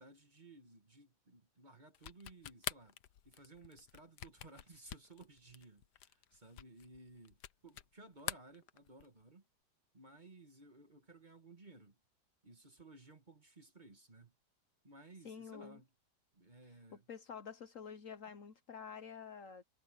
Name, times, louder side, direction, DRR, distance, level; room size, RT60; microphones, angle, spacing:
voice 1, 0.0-3.0 3.2-9.4 9.9-12.0 12.4-14.3 14.8-15.9 16.3-17.1, right 2 dB, 30° right, 1.9 m, -58 dB
sound 1, 1.9-7.9 8.2-9.2, left 11 dB, 75° left, 1.4 m, -46 dB
voice 2, 15.2-15.8 17.1-19.6, left 7 dB, 55° left, 1.2 m, -49 dB
omnidirectional pair, 1.8 m